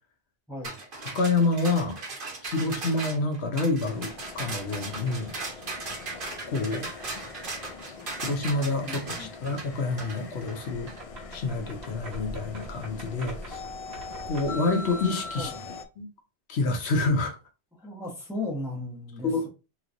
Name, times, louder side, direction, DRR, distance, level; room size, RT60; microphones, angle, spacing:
voice 1, 0.5-0.8 8.8-9.3 15.4-15.6 17.8-19.5, left 2 dB, 5° right, 0.8 m, -36 dB
sound 1, 0.6-11.0, right 3 dB, 55° right, 1.1 m, -38 dB
voice 2, 1.1-2.0 2.4-5.3 6.5-6.9 8.2-10.9 11.3-13.6 14.2-15.5 16.0-16.1 16.5-17.4 19.2-19.5, left 3 dB, 85° left, 1.0 m, -27 dB
sound 2, 3.8-15.8, left 4 dB, 55° left, 0.4 m, -42 dB
sound 3, 10.6-14.7, right 1 dB, 90° right, 1.3 m, -43 dB
3.2 x 3.1 x 2.5 m
omnidirectional pair, 1.1 m